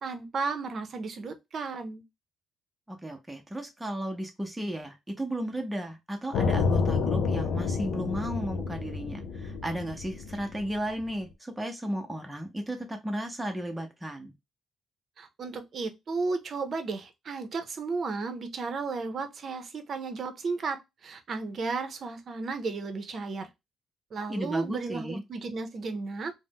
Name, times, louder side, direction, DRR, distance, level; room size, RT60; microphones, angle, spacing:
voice 1, 0.0-2.0 15.2-23.5 24.1-26.3, right 4 dB, 50° right, 0.6 m, -34 dB
voice 2, 2.9-14.3 24.3-25.2, right 1 dB, 10° right, 0.6 m, -34 dB
sound 1, 6.3-11.2, left 5 dB, 75° left, 0.4 m, -29 dB
2.5 x 2.0 x 3.5 m
cardioid pair, 90°, 0 cm